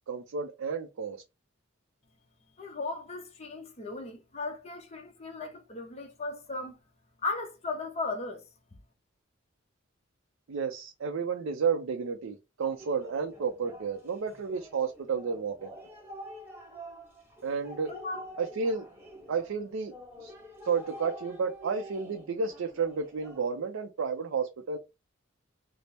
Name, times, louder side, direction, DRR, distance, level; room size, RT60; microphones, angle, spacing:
voice 1, 0.1-1.2 10.5-15.7 17.4-17.9 18.4-18.8 19.3-19.9 20.2-20.3 20.6-24.8, right 5 dB, 80° right, 0.4 m, -31 dB
voice 2, 2.6-6.8 7.2-8.4 17.9-18.2, left 3 dB, 30° left, 0.7 m, -36 dB
sound 1, 12.6-23.4, equal, 10° right, 1.1 m, -47 dB
4.1 x 2.0 x 3.3 m
head